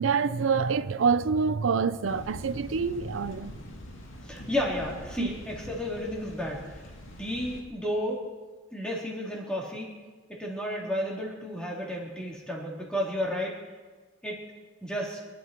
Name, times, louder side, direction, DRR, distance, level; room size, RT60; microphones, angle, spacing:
voice 1, 0.0-3.5 5.2-5.3, right 5 dB, 85° right, 0.5 m, -26 dB
sound 1, 2.0-7.6, left 1 dB, 80° left, 2.2 m, -43 dB
voice 2, 4.2-6.9 7.2-8.2 8.7-10.0 10.3-13.6 14.2-14.4 14.8-15.2, equal, 5° left, 3.6 m, -32 dB
25.0 x 11.5 x 4.6 m
head